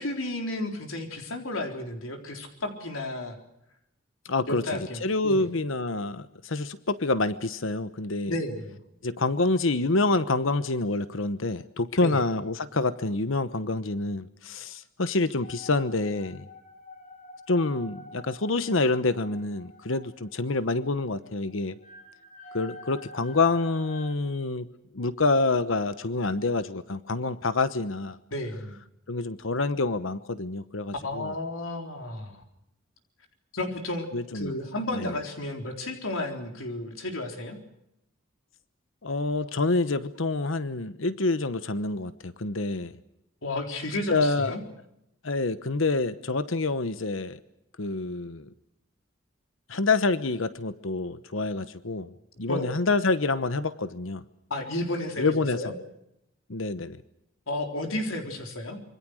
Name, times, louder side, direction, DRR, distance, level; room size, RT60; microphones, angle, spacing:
voice 1, 0.0-3.4 4.5-5.4 8.3-8.8 12.0-12.2 28.3-28.8 31.0-32.4 33.5-34.1 34.3-37.6 43.4-44.6 52.5-52.7 54.5-55.7 57.5-58.8, left 1 dB, 90° left, 4 dB, 4.0 m, -32 dB
voice 2, 4.3-8.3 9.0-16.5 17.5-21.8 22.5-24.7 24.9-28.2 29.1-31.3 34.1-34.5 34.9-35.1 39.0-42.9 44.1-44.5 45.2-47.4 47.8-48.5 49.7-52.1 52.4-54.2 55.2-55.7 56.5-57.0, left 3 dB, 70° left, 13 dB, 1.1 m, -27 dB
sound 1, 15.4-24.1, left 2 dB, 40° left, 7.5 m, -48 dB
26.5 x 24.5 x 6.4 m, 0.81 s
head